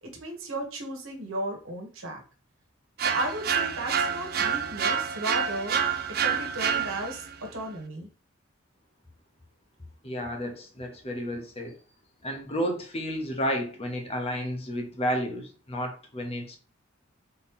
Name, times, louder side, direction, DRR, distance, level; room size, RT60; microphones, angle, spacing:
voice 1, 0.0-2.2 3.0-5.8 6.2-8.1, right 1 dB, 80° right, 1.4 m, -35 dB
sound 1, 3.0-7.3, right 7 dB, 50° right, 0.5 m, -28 dB
voice 2, 10.0-11.7 12.2-16.6, equal, 30° left, 0.9 m, -31 dB
4.1 x 3.0 x 3.7 m
head